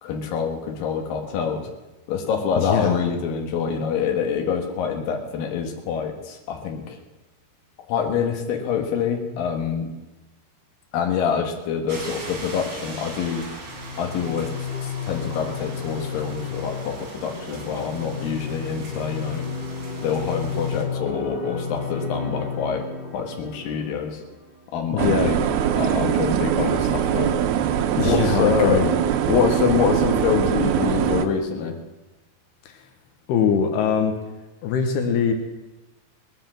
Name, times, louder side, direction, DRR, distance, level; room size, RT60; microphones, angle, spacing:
voice 1, 0.0-1.7 2.1-7.0 7.9-9.9 10.9-13.5 14.0-19.5 20.0-22.9 23.1-24.2 24.7-25.4 25.8-27.3 28.0-28.8 29.3-31.8, left 6 dB, 65° left, 3 dB, 3.1 m, -26 dB
voice 2, 2.6-3.0 24.9-25.3 28.0-28.9 33.3-34.2 34.6-35.3, left 7 dB, 85° left, 5 dB, 3.2 m, -22 dB
sound 1, 11.9-20.8, right 3 dB, 40° right, 3.5 m, -40 dB
sound 2, 13.7-24.7, left 5 dB, 20° left, 7.6 m, -32 dB
sound 3, 25.0-31.3, right 9 dB, 80° right, 2.6 m, -22 dB
19.5 x 8.0 x 7.5 m, 1.1 s
omnidirectional pair, 4.6 m